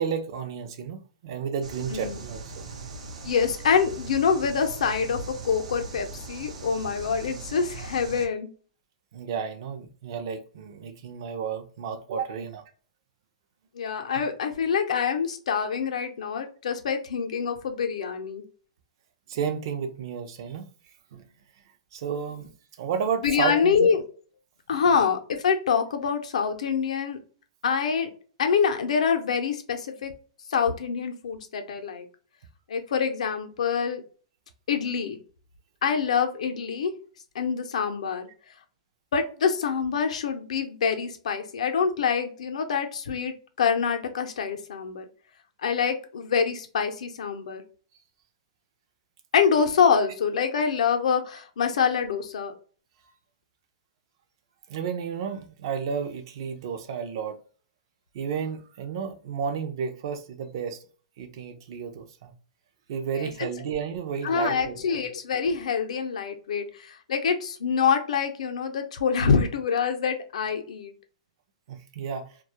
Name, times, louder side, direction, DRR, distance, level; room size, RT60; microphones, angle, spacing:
voice 1, 0.0-2.7 9.1-12.6 19.3-20.7 21.1-21.2 21.9-22.5 22.8-23.9 24.9-25.0 54.7-57.4 58.1-60.8 61.2-62.3 62.9-65.0 71.7-72.3, right 7 dB, 40° right, 0.4 m, -32 dB
sound 1, 1.6-8.3, right 3 dB, 80° right, 0.7 m, -40 dB
voice 2, 3.2-8.5 13.8-18.4 23.2-24.0 24.7-27.2 27.6-28.1 28.4-30.1 30.5-32.1 32.7-34.0 34.7-35.2 35.8-36.9 37.3-38.3 39.1-45.0 45.6-47.6 49.3-52.5 63.2-63.3 64.2-70.9, left 6 dB, 80° left, 0.5 m, -25 dB
2.2 x 2.0 x 2.7 m
hypercardioid pair, 175°, 4 cm